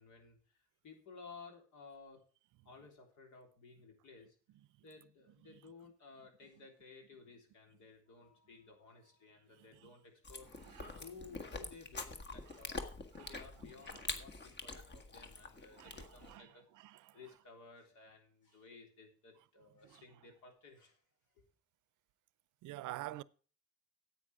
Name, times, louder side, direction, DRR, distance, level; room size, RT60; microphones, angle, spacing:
voice 1, 0.0-2.2 2.7-4.4 4.8-10.5 11.0-16.6 17.1-21.0 21.3-21.4, left 4 dB, 75° left, 3.5 m, -56 dB
voice 2, 9.5-9.9 10.6-11.0 12.5-12.6 13.1-14.0 15.7-17.2 19.8-20.0 22.6-23.2, right 16 dB, 80° right, 0.5 m, -50 dB
Chewing mastication, 10.2-16.4, left 3 dB, 35° left, 1.6 m, -46 dB
10.0 x 8.4 x 4.8 m
cardioid pair, 90°, 30 cm